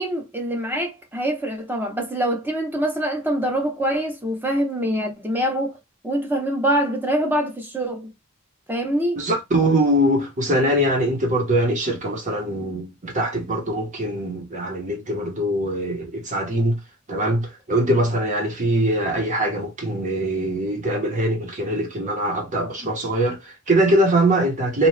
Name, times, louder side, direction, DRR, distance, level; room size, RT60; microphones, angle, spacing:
voice 1, 0.0-5.8 6.0-8.1 8.7-9.2, right 1 dB, 10° right, 1.0 m, -24 dB
voice 2, 9.2-16.8 17.1-24.9, right 1 dB, 35° right, 1.2 m, -22 dB
2.8 x 2.5 x 3.3 m
head